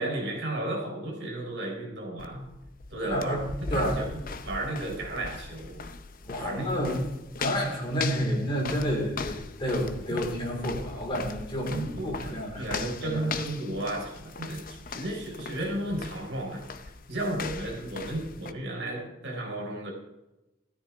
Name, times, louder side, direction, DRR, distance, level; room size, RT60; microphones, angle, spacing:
voice 1, 0.0-2.5 2.9-3.4 3.7-5.8 6.4-6.7 10.1-10.2 11.7-16.7 17.1-19.9, right 1 dB, 70° right, 0 dB, 4.2 m, -33 dB
sound 1, 2.2-18.5, left 4 dB, 50° left, 0.7 m, -39 dB
voice 2, 3.0-3.4 3.7-4.0 6.2-7.0 7.4-13.2, equal, 25° left, -3 dB, 4.7 m, -30 dB
16.5 x 13.0 x 3.6 m, 0.96 s
head